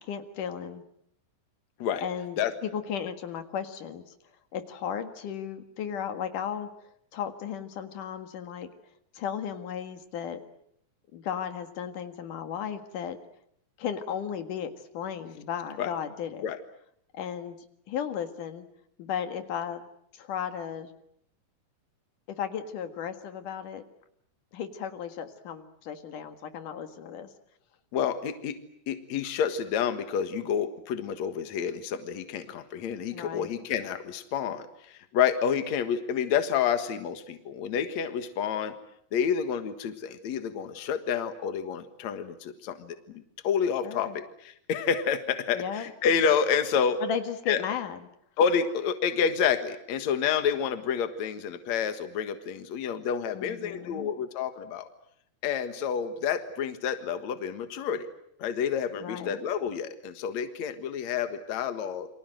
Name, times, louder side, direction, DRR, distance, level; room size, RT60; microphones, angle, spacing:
voice 1, 0.0-0.8 2.0-2.4 2.6-4.0 4.5-6.7 7.1-8.7 9.1-10.4 11.1-13.2 13.8-16.5 17.1-17.6 17.9-18.6 19.0-19.9 20.1-20.9 22.3-23.8 24.5-27.3 33.1-33.5 43.8-44.2 45.5-45.9 47.0-48.0 53.3-54.1 59.0-59.4, left 8 dB, 85° left, 8 dB, 3.3 m, -35 dB
voice 2, 27.9-28.6 28.9-38.7 39.1-47.0 47.5-47.6 48.4-54.9 55.4-58.1 58.4-62.1, left 7 dB, 65° left, 9 dB, 2.8 m, -29 dB
29.5 x 25.0 x 7.8 m, 0.71 s
omnidirectional pair, 3.6 m